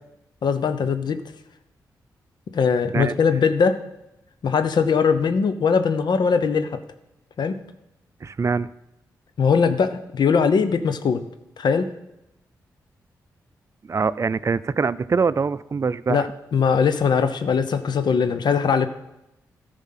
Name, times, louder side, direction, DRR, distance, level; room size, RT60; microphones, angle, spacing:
voice 1, 0.4-1.2 2.5-3.8 4.4-6.8 7.4-7.5 9.4-11.2 11.6-11.9 16.1-18.9, left 6 dB, 65° left, 10 dB, 0.8 m, -20 dB
voice 2, 8.2-8.7 13.9-16.2, right 5 dB, 40° right, 17 dB, 0.4 m, -23 dB
13.5 x 5.1 x 5.8 m, 0.89 s
supercardioid pair, 40°, 8 cm